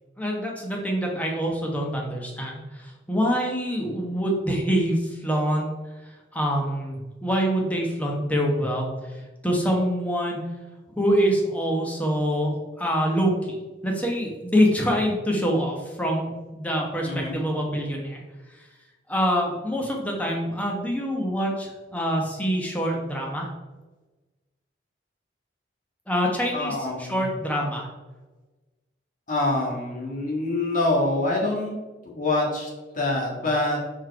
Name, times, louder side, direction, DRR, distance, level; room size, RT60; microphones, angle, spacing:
voice 1, 0.2-5.7 6.3-10.4 11.0-13.6 13.8-18.2 18.5-18.6 19.1-23.5 26.1-27.9, equal, 10° left, -1 dB, 1.1 m, -25 dB
voice 2, 17.0-17.4 26.5-27.2 29.3-31.7 32.0-32.7 32.9-33.8, left 2 dB, 45° left, -2 dB, 1.6 m, -25 dB
4.6 x 4.6 x 4.7 m, 1.2 s
head